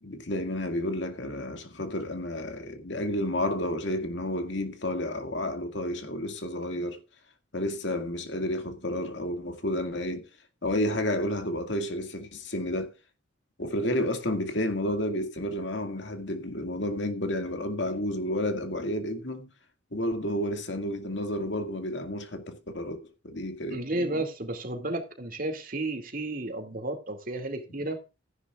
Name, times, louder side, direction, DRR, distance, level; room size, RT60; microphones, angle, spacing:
voice 1, 0.0-7.0 7.5-10.3 10.6-12.9 13.6-19.5 19.9-23.0 23.2-24.2, left 1 dB, 65° left, 2.1 m, -31 dB
voice 2, 23.7-28.0, right 2 dB, 45° right, 2.4 m, -32 dB
15.0 x 11.0 x 2.4 m
head